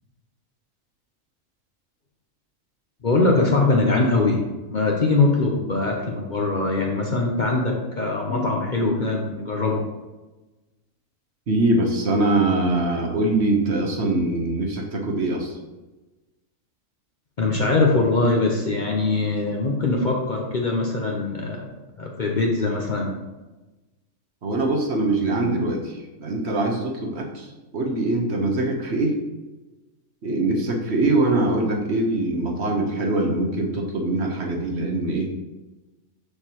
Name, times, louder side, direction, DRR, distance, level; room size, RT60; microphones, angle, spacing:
voice 1, 3.0-4.4 4.7-9.9 17.4-21.6 22.0-23.1, left 3 dB, 45° left, 0 dB, 0.8 m, -22 dB
voice 2, 11.5-15.6 24.4-27.5 27.7-29.2 30.2-35.3, right 2 dB, 55° right, 1 dB, 1.2 m, -23 dB
6.7 x 6.6 x 2.9 m, 1.1 s
omnidirectional pair, 1.4 m